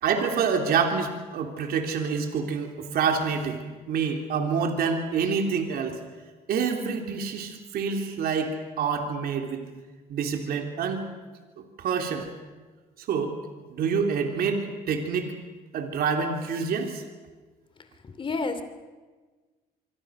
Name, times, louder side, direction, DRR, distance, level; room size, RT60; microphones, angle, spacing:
voice 1, 0.0-3.6 3.9-6.0 6.5-9.7 10.1-11.1 11.6-12.3 13.0-13.4 13.7-15.3 15.7-17.0, right 6 dB, 65° right, 4 dB, 3.5 m, -27 dB
voice 2, 18.0-18.6, left 3 dB, 30° left, 10 dB, 2.8 m, -30 dB
25.5 x 25.0 x 6.5 m, 1.3 s
cardioid pair, 110°, 17 cm